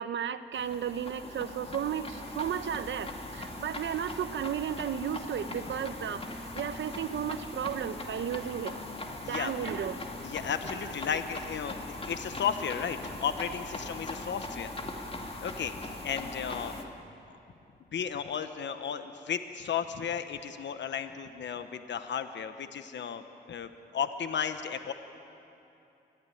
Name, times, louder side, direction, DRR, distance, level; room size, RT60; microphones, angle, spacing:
voice 1, 0.0-8.8 9.3-10.1 10.8-10.9, right 9 dB, 85° right, 11 dB, 1.0 m, -34 dB
sound 1, 0.5-16.8, left 2 dB, 30° left, 2.4 m, -40 dB
voice 2, 9.2-9.6 10.2-14.7 15.4-16.7 17.9-24.9, left 7 dB, 75° left, 9 dB, 1.0 m, -34 dB
24.0 x 16.0 x 9.9 m, 2.8 s
cardioid pair, 80°, 19 cm